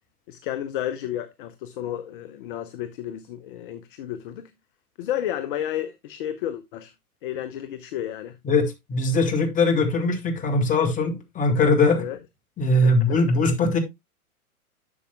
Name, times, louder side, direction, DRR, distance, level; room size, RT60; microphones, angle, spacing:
voice 1, 0.3-4.5 5.0-6.9 7.2-8.4 12.0-12.2 12.8-12.9, left 11 dB, 35° left, 0.7 m, -32 dB
voice 2, 8.4-12.0 12.6-13.8, left 2 dB, 15° left, 1.7 m, -21 dB
11.0 x 7.0 x 2.3 m
figure-of-eight pair, 115°, 45 cm